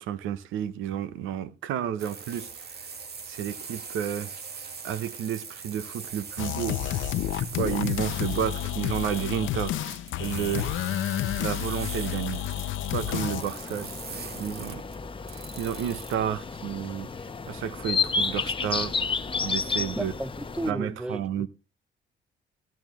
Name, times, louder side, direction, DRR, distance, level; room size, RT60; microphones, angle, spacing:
voice 1, 0.0-2.9 3.3-4.3 4.8-7.1 7.3-10.8 11.4-12.4 12.9-14.8 15.3-19.0 19.4-20.1 20.7-21.5, right 9 dB, 85° right, 0.8 m, -31 dB
sound 1, 2.0-16.2, right 5 dB, 55° right, 1.7 m, -42 dB
sound 2, 6.4-13.4, left 12 dB, 80° left, 0.7 m, -30 dB
sound 3, 13.3-20.7, left 4 dB, 25° left, 0.8 m, -31 dB
voice 2, 19.9-21.5, right 1 dB, 5° right, 0.5 m, -34 dB
16.0 x 8.7 x 3.0 m
cardioid pair, 90°, 20 cm